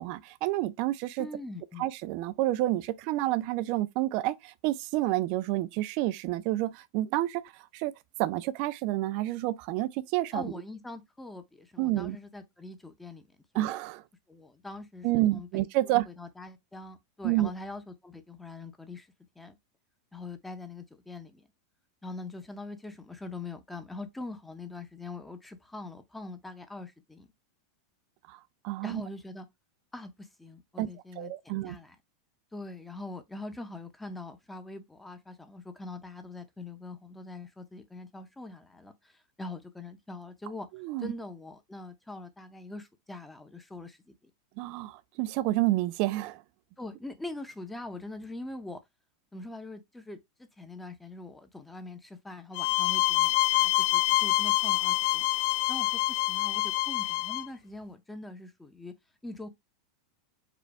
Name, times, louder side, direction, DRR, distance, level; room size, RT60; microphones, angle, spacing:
voice 1, 0.0-1.3 1.8-7.9 8.2-10.5 11.8-12.2 13.5-14.0 15.0-16.0 17.2-17.5 28.3-29.0 30.8-30.9 31.2-31.8 40.7-41.1 44.6-46.4, right 16 dB, 45° right, 0.4 m, -29 dB
voice 2, 1.2-1.9 10.3-13.3 13.5-13.7 14.3-19.1 19.4-19.6 20.1-21.4 22.0-27.3 28.8-29.5 29.9-31.3 31.6-32.0 32.5-40.7 41.0-44.3 46.8-48.8 49.3-55.3 55.7-58.9 59.2-59.5, left 2 dB, 5° left, 0.6 m, -43 dB
sound 1, 52.5-57.5, left 20 dB, 55° left, 0.3 m, -26 dB
4.9 x 2.2 x 4.6 m
supercardioid pair, 150°, 2 cm